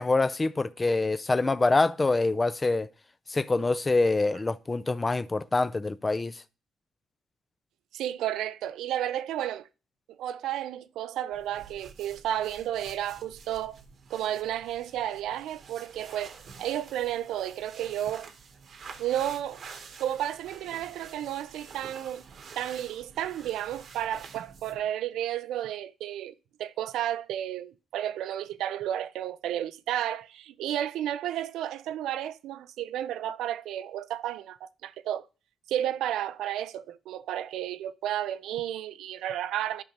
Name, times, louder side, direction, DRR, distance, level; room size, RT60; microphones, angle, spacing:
voice 1, 0.0-2.9 3.3-6.4, left 3 dB, 25° left, 0.4 m, -25 dB
voice 2, 7.9-9.7 10.2-13.8 14.1-18.3 19.0-19.6 20.0-22.2 22.6-26.3 26.6-35.3 35.7-39.8, right 11 dB, 85° right, 0.4 m, -32 dB
sound 1, 11.3-24.9, right 5 dB, 55° right, 1.0 m, -49 dB
12.0 x 5.3 x 2.9 m
cardioid pair, 90°, 0 cm